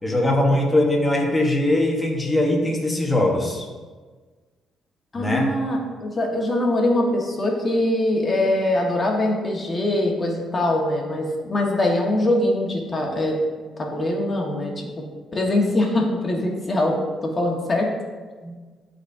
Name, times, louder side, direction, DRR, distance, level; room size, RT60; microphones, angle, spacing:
voice 1, 0.0-3.6 5.1-5.5 18.4-18.5, left 1 dB, 10° left, -2 dB, 1.4 m, -21 dB
voice 2, 5.1-13.4 13.8-15.0 15.3-17.9, left 1 dB, 30° left, 0 dB, 1.6 m, -23 dB
12.0 x 4.2 x 2.8 m, 1.4 s
cardioid pair, 90°, 0 cm